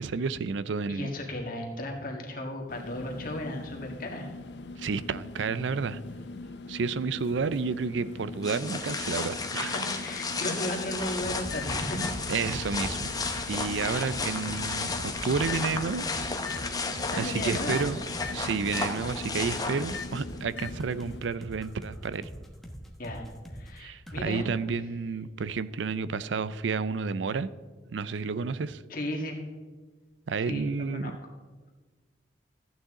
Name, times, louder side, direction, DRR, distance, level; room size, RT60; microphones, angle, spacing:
voice 1, 0.0-1.1 4.8-6.0 6.7-9.7 12.3-13.1 13.5-16.0 17.2-18.0 18.3-22.3 23.8-27.5 27.9-28.8 30.3-31.2, right 5 dB, 85° right, 16 dB, 0.5 m, -31 dB
voice 2, 0.9-4.3 9.6-12.0 17.1-17.9 23.0-23.2 23.5-24.5 28.9-29.4 30.5-31.1, left 1 dB, 50° left, 0 dB, 1.9 m, -35 dB
sound 1, 2.7-21.2, left 3 dB, 65° left, 0.5 m, -42 dB
sound 2, 8.4-20.4, left 3 dB, 20° left, 0.9 m, -33 dB
sound 3, 11.2-23.8 24.1-24.3, equal, ahead, 1.2 m, -43 dB
14.5 x 9.0 x 3.8 m, 1.4 s
head